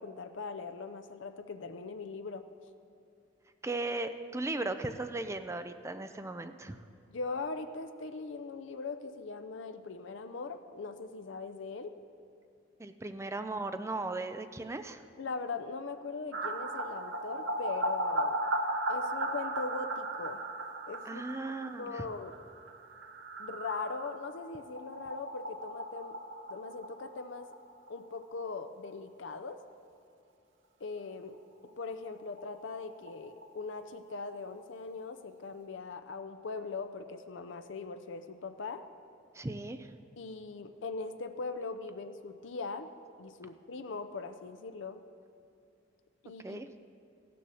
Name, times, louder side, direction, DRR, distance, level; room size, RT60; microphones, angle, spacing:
voice 1, 0.0-2.4 7.1-11.9 15.2-18.4 18.9-20.4 20.9-22.3 23.4-26.2 26.5-27.5 27.9-29.6 30.8-31.4 31.8-38.8 40.2-42.9 43.2-45.0 46.2-46.6, left 4 dB, 70° left, 8 dB, 0.6 m, -40 dB
voice 2, 3.6-6.8 12.8-15.0 21.0-22.0 39.3-39.9 46.4-46.7, right 2 dB, 15° right, 9 dB, 0.5 m, -37 dB
sound 1, 16.3-27.9 28.2-28.3 28.6-28.7 31.7-31.8 32.0-32.1 32.4-34.1 34.5-34.6, right 1 dB, 80° right, 0.7 m, -37 dB
15.5 x 6.9 x 6.3 m, 2.6 s
head